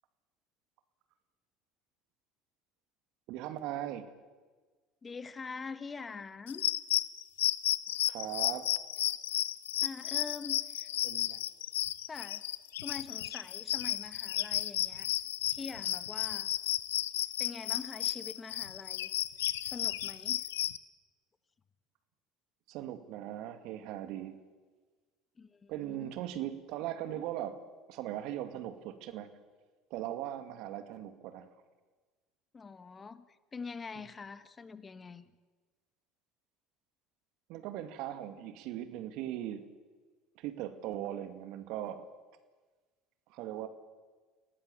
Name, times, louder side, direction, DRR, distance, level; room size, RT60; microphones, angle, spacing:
voice 1, 3.3-4.1 8.0-8.7 11.0-11.4 22.7-24.4 25.7-27.6 27.9-29.3 29.9-31.5 37.5-39.6 40.4-42.1 43.3-43.7, right 12 dB, 60° right, 10 dB, 2.2 m, -39 dB
voice 2, 5.0-6.7 9.8-10.9 12.1-12.4 12.8-15.1 15.5-16.5 17.4-19.1 19.6-20.4 25.4-26.1 32.5-33.3 33.5-35.3, left 5 dB, 25° left, 13 dB, 1.6 m, -44 dB
sound 1, 6.5-20.8, left 13 dB, 80° left, 0.7 m, -33 dB
27.5 x 18.5 x 7.1 m, 1.3 s
hypercardioid pair, 70°, 0 cm